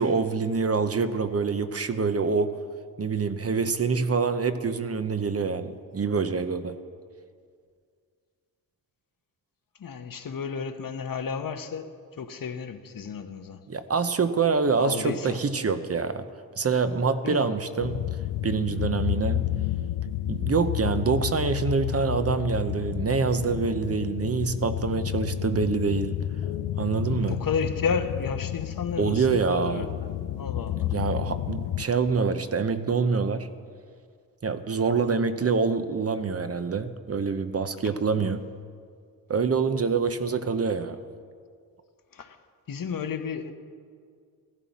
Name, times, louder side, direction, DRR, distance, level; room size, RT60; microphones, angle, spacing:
voice 1, 0.0-2.5 3.0-6.8 13.7-16.3 16.6-18.0 18.4-19.4 20.3-26.2 26.8-27.4 29.0-29.9 30.9-33.5 34.4-38.4 39.3-41.0, right 5 dB, 40° right, 10 dB, 0.7 m, -26 dB
voice 2, 9.8-11.9 12.2-13.6 14.8-15.4 17.2-17.5 27.0-30.9 35.0-35.3 38.2-38.3 42.1-42.4 42.7-43.5, left 6 dB, 60° left, 8 dB, 1.0 m, -32 dB
sound 1, 17.8-31.9, left 13 dB, 90° left, 0.5 m, -31 dB
15.0 x 14.0 x 4.2 m, 2.1 s
cardioid pair, 80°, 38 cm